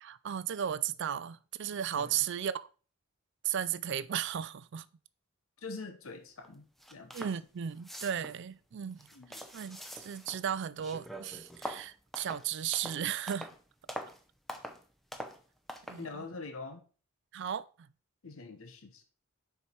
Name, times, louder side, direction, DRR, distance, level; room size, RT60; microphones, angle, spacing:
voice 1, 0.0-2.7 3.4-4.9 7.1-9.1 9.5-13.5 15.9-16.2 17.3-17.7, right 9 dB, 55° right, 0.4 m, -35 dB
voice 2, 5.6-6.6 6.9-7.1 9.1-9.4 15.9-16.8 18.2-19.0, left 3 dB, 70° left, 0.9 m, -44 dB
sound 1, 6.4-6.5 6.8-7.4 7.7-8.4 8.9-10.5 10.8-13.6 13.9-14.2 14.5-14.8 15.1-15.4 15.7-16.0, equal, ahead, 0.6 m, -44 dB
6.7 x 4.7 x 4.4 m
head